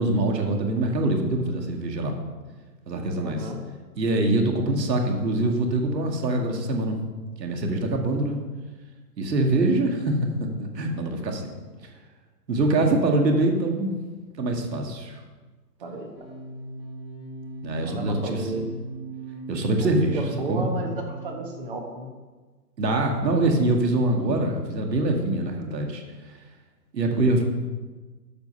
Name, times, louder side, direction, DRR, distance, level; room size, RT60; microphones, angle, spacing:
voice 1, 0.0-2.2 2.9-3.5 4.0-7.0 7.4-8.4 9.2-10.2 10.6-11.5 12.5-13.9 14.4-15.2 17.6-18.4 19.5-20.2 20.5-20.7 22.8-26.0 26.9-27.4, right 2 dB, 85° right, 2 dB, 2.2 m, -24 dB
voice 2, 3.1-3.6 15.8-16.1 17.8-18.7 19.8-22.1, right 2 dB, 35° right, 3 dB, 1.5 m, -33 dB
sound 1, 16.2-21.8, right 2 dB, 5° right, 0.7 m, -38 dB
13.0 x 5.3 x 5.6 m, 1.3 s
hypercardioid pair, 175°, 49 cm